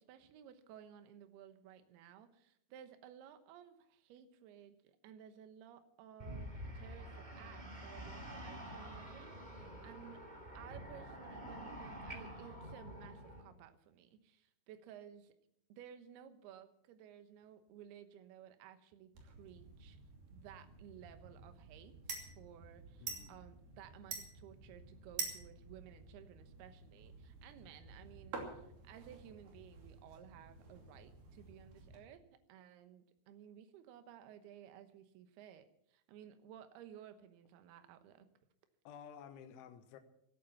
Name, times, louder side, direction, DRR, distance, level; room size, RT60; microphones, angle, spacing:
voice 1, 0.0-10.2 10.5-15.3 15.7-20.0 20.3-32.2 32.5-38.3, right 9 dB, 70° right, 2.8 m, -56 dB
sound 1, 6.2-13.4, right 1 dB, 15° right, 1.5 m, -48 dB
voice 2, 9.7-10.1 23.0-23.4 38.8-40.0, left 8 dB, 85° left, 3.4 m, -54 dB
sound 2, 19.1-31.9, right 5 dB, 50° right, 3.9 m, -49 dB
16.5 x 13.5 x 5.8 m
omnidirectional pair, 5.4 m